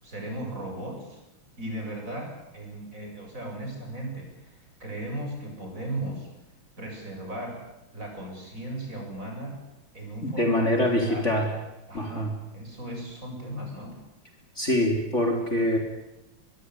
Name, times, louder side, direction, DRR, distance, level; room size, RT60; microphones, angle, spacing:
voice 1, 0.0-1.2 1.6-6.3 6.8-7.6 7.9-9.6 9.9-11.3 11.9-14.0, right 1 dB, 35° right, 1 dB, 8.1 m, -37 dB
voice 2, 10.2-11.5 11.9-12.3 14.6-15.8, left 1 dB, 30° left, 2 dB, 3.7 m, -24 dB
24.5 x 22.0 x 9.8 m, 0.95 s
omnidirectional pair, 2.3 m